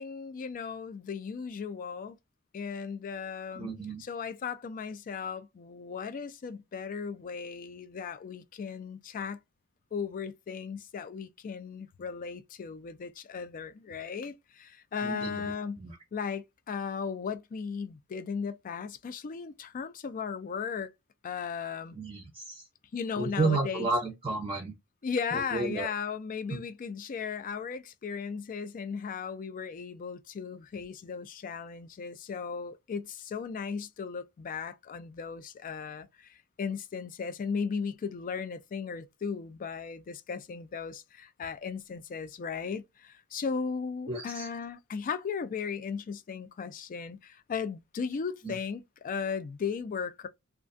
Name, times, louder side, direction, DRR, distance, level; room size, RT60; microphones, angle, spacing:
voice 1, 0.0-2.2 2.5-3.7 4.0-9.4 9.9-15.8 16.1-20.9 21.2-22.0 22.9-23.9 25.0-50.3, left 6 dB, 40° left, 0.3 m, -36 dB
voice 2, 3.6-4.0 15.0-15.5 15.8-16.0 21.9-22.6 23.2-24.7 25.3-25.9 44.1-44.5 48.4-48.5, right 3 dB, 25° right, 0.5 m, -32 dB
2.4 x 2.2 x 2.5 m
head